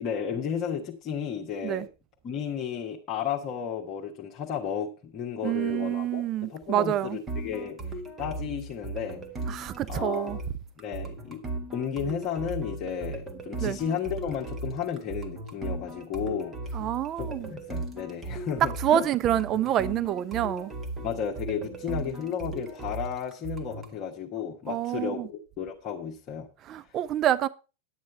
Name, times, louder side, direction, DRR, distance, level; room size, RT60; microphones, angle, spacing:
voice 1, 0.0-1.9 2.2-9.2 9.9-10.4 10.8-11.4 11.7-16.8 17.2-19.1 21.0-26.5, left 8 dB, 35° left, 1.4 m, -33 dB
voice 2, 5.4-7.2 9.5-10.4 13.6-13.8 16.7-17.5 18.8-20.7 24.7-25.3 26.7-27.5, right 11 dB, 30° right, 0.5 m, -27 dB
sound 1, 7.3-24.0, right 3 dB, 15° right, 1.8 m, -37 dB
10.5 x 9.3 x 4.4 m
figure-of-eight pair, 90°, 0 cm